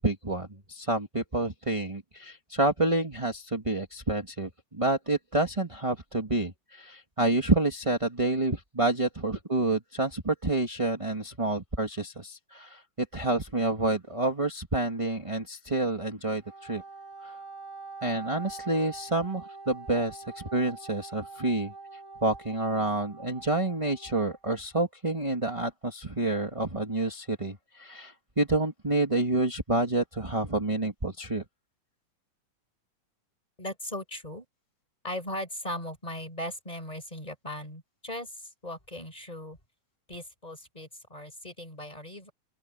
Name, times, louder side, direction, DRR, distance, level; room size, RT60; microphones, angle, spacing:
voice 1, 0.0-12.8 13.1-16.8 17.2-17.3 18.0-21.7 22.2-31.4, right 2 dB, 15° right, 1.3 m, -28 dB
Wind instrument woodwind instrument, 16.4-24.4, right 3 dB, 30° right, 5.1 m, -45 dB
voice 2, 33.6-34.4 35.0-39.6 40.1-42.3, left 1 dB, 10° left, 4.9 m, -38 dB
open air
omnidirectional pair, 3.6 m